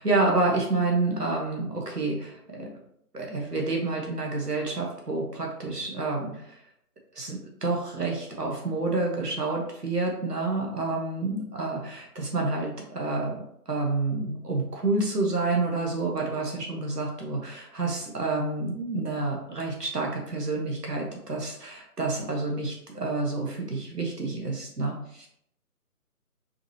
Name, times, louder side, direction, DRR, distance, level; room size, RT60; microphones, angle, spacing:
voice 1, 0.0-2.7 3.1-6.6 7.1-25.3, right 3 dB, 85° right, -1 dB, 1.3 m, -29 dB
4.9 x 2.8 x 3.2 m, 0.73 s
figure-of-eight pair, 150°, 46 cm